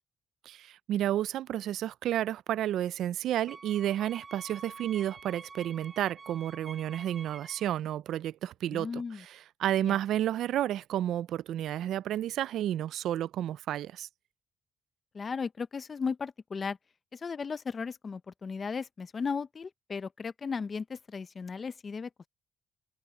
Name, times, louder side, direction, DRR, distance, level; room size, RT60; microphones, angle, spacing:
voice 1, 0.5-14.1, right 12 dB, 80° right, 0.4 m, -31 dB
Wind instrument woodwind instrument, 3.5-7.8, right 4 dB, 30° right, 2.0 m, -47 dB
voice 2, 8.7-9.2 9.8-10.0 15.1-16.8 17.1-22.1, left 5 dB, 40° left, 0.7 m, -36 dB
cardioid pair, 90°, 0 cm